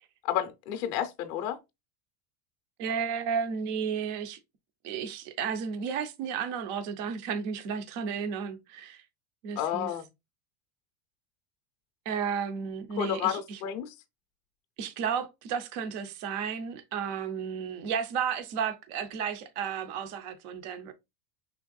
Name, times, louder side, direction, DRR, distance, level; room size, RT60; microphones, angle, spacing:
voice 1, 0.2-1.6 9.6-10.1 13.0-13.9, left 10 dB, 35° left, 0.5 m, -31 dB
voice 2, 2.8-4.4 4.8-9.0 9.4-9.9 12.1-13.6 14.8-20.9, right 7 dB, 35° right, 0.4 m, -33 dB
5.2 x 3.5 x 2.2 m
supercardioid pair, 180°, 43 cm